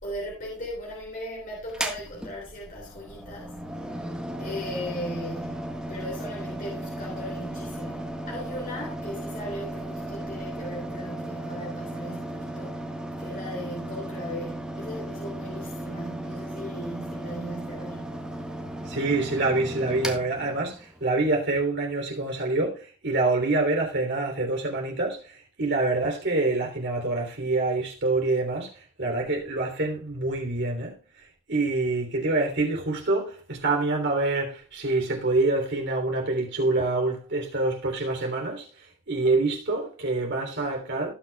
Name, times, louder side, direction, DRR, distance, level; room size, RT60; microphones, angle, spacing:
voice 1, 0.0-3.6 4.4-12.9 13.2-18.2, equal, 40° left, 3.1 m, -37 dB
Mechanical fan, 1.7-21.1, right 1 dB, 5° right, 1.5 m, -36 dB
voice 2, 18.8-41.1, right 2 dB, 55° right, 3.4 m, -26 dB
18.5 x 6.2 x 2.4 m
head